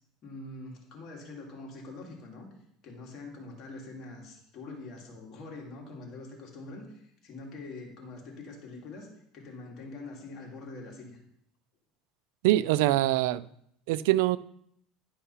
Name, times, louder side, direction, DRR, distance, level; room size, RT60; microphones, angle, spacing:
voice 1, 0.2-2.5 2.8-9.1 9.3-11.2, left 2 dB, 45° left, 2.6 m, -44 dB
voice 2, 12.4-13.4 13.9-14.4, right 15 dB, 80° right, 0.4 m, -24 dB
11.0 x 5.7 x 5.6 m
supercardioid pair, 130°, 0 cm